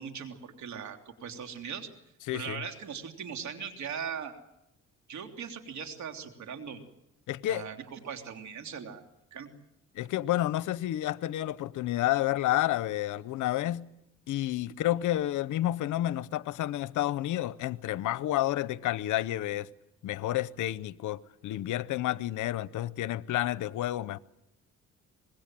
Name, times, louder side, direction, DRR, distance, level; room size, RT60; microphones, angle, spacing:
voice 1, 0.0-1.9 2.3-4.3 5.1-6.8 7.4-9.0 9.3-9.5, right 7 dB, 70° right, 3.2 m, -39 dB
voice 2, 2.3-2.6 7.3-7.6 9.9-13.8 14.3-19.7 20.0-24.2, left 14 dB, 80° left, 0.8 m, -30 dB
25.5 x 20.5 x 7.6 m
cardioid pair, 90°, 30 cm